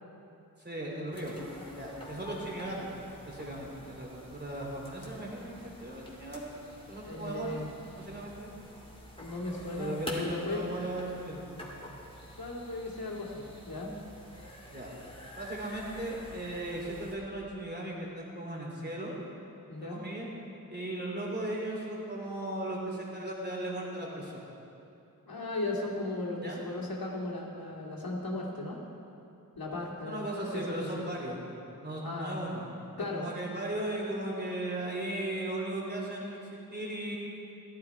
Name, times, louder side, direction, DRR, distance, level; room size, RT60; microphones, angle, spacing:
voice 1, 0.6-1.3 1.7-2.9 3.2-6.5 6.9-7.6 8.0-8.5 9.7-11.5 14.7-14.9 15.4-19.1 19.8-20.3 20.7-24.4 26.4-26.6 30.0-31.4 31.8-32.7 33.1-37.2, right 1 dB, 30° right, -3 dB, 3.2 m, -37 dB
sound 1, 1.1-17.2, equal, 15° left, 2.6 m, -47 dB
voice 2, 7.0-7.7 9.2-10.6 12.3-13.9 19.7-20.0 25.3-28.8 29.6-31.0 32.0-32.4 33.0-33.3, left 2 dB, 75° left, -3 dB, 2.3 m, -36 dB
15.5 x 12.5 x 4.7 m, 2.8 s
wide cardioid pair, 65°, 36 cm